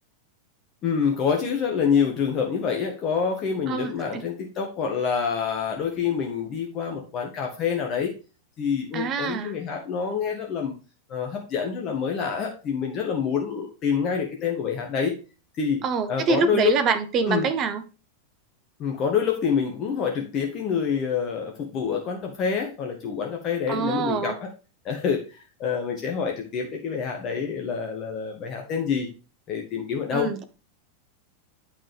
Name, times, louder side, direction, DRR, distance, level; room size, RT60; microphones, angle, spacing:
voice 1, 0.8-8.1 8.6-10.8 11.1-15.2 15.6-15.8 16.1-16.8 17.2-17.5 18.8-24.5 24.8-29.1 29.5-30.3, left 6 dB, 35° left, 1.6 m, -27 dB
voice 2, 3.7-4.2 8.9-9.6 15.8-17.8 23.7-24.3 30.1-30.4, right 5 dB, 35° right, 1.1 m, -25 dB
8.8 x 5.7 x 3.5 m
figure-of-eight pair, 90°, 0 cm